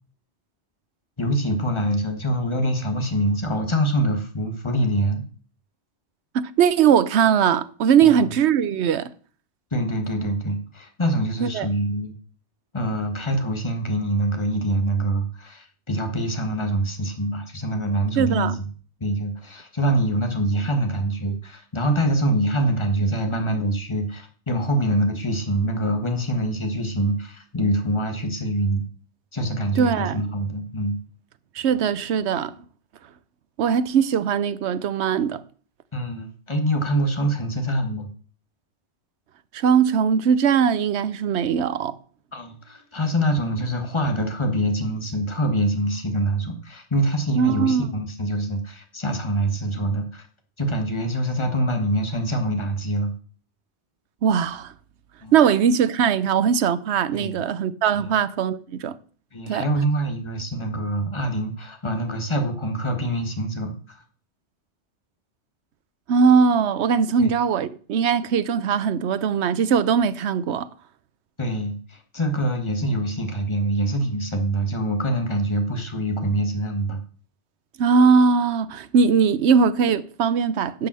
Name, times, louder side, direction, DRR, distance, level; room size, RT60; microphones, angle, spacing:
voice 1, 1.2-5.2 8.0-8.2 9.7-12.1 12.7-18.6 19.0-28.8 29.3-31.0 35.9-38.1 42.3-50.2 50.6-53.1 55.2-55.3 57.1-57.4 57.9-58.1 59.3-64.0 67.2-67.3 71.4-77.0, right 1 dB, 25° left, 1.6 m, -25 dB
voice 2, 6.3-9.1 11.4-11.7 18.2-18.5 29.8-30.2 31.6-32.5 33.6-35.4 39.5-42.0 47.3-47.9 54.2-54.7 55.3-59.0 59.5-59.7 66.1-70.7 77.8-80.9, right 6 dB, 75° right, 1.0 m, -20 dB
10.5 x 5.5 x 7.5 m
omnidirectional pair, 1.1 m